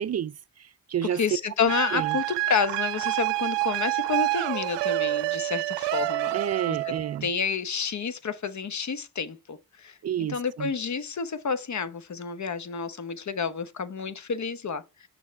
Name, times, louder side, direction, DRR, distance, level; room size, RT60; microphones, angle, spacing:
voice 1, 0.0-1.2 1.9-2.2 6.3-7.3 10.0-10.7, right 9 dB, 40° right, 0.4 m, -30 dB
voice 2, 1.1-6.4 6.7-6.9 7.2-14.8, left 6 dB, 45° left, 1.0 m, -30 dB
sound 1, 1.7-7.2, right 20 dB, 90° right, 0.6 m, -28 dB
6.5 x 5.8 x 3.5 m
supercardioid pair, 50°, 41 cm